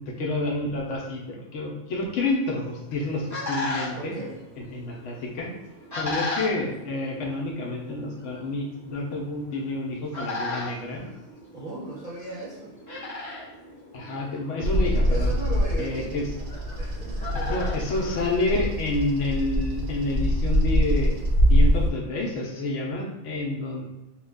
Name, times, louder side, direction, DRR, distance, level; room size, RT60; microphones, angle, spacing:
voice 1, 0.1-4.2 4.6-5.5 5.9-11.1 13.9-15.3 15.8-16.3 17.5-21.1 21.5-23.9, left 2 dB, 70° left, -1 dB, 1.0 m, -29 dB
sound 1, 2.6-18.9, left 2 dB, 15° left, 0.9 m, -37 dB
voice 2, 3.9-4.4 11.5-12.7 15.1-16.2 16.8-17.8, right 3 dB, 45° right, -6 dB, 0.7 m, -36 dB
Bird vocalization bird call bird song, 14.6-21.9, equal, 80° right, 1.0 m, -24 dB
3.2 x 2.2 x 3.5 m, 1.0 s
omnidirectional pair, 1.3 m